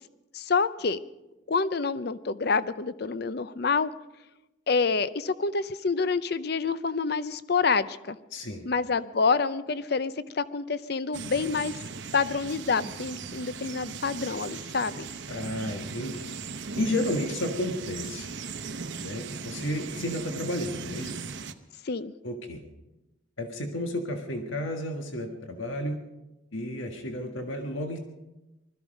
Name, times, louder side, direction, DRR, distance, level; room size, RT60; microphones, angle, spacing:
voice 1, 0.3-1.0 1.5-3.9 4.7-8.2 8.6-11.7 12.1-15.1 21.8-22.1, left 4 dB, 50° left, 15 dB, 0.6 m, -27 dB
voice 2, 8.3-8.7 15.3-16.3 16.8-18.3 19.0-21.1 22.2-22.6 23.4-26.0 26.5-28.0, left 1 dB, 80° left, 4 dB, 1.6 m, -32 dB
sound 1, 11.1-21.5, right 5 dB, 65° right, 0.8 m, -38 dB
20.5 x 13.5 x 5.2 m, 0.99 s
head